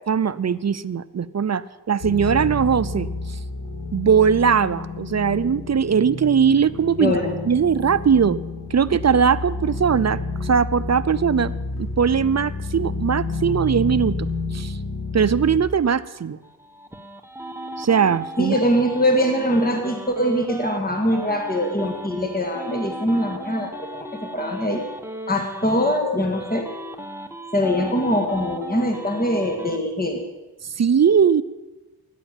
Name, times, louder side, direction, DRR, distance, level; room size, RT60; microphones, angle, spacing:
voice 1, 0.1-3.1 3.9-7.1 7.5-8.4 8.7-14.8 15.1-16.4 17.8-18.5 30.8-31.4, right 7 dB, 45° right, 15 dB, 0.6 m, -20 dB
sound 1, 2.0-15.6, left 2 dB, 70° left, 3.3 m, -30 dB
voice 2, 7.0-7.3 18.4-24.8 25.3-26.7 27.5-30.2, equal, 25° left, 3 dB, 1.8 m, -22 dB
sound 2, 16.4-20.8 21.1-26.0 26.3-29.8, right 1 dB, 5° right, 1.1 m, -36 dB
14.0 x 10.0 x 9.0 m, 1.1 s
wide cardioid pair, 80°, 38 cm